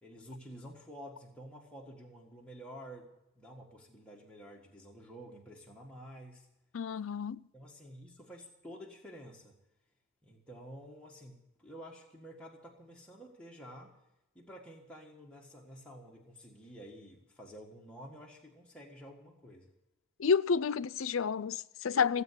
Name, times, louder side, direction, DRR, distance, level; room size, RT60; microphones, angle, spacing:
voice 1, 0.0-6.5 7.5-9.6 10.2-13.9 14.3-19.7, equal, 5° left, 1.6 m, -50 dB
voice 2, 6.7-7.4 20.2-22.2, left 6 dB, 80° left, 0.5 m, -30 dB
16.5 x 8.1 x 9.7 m
head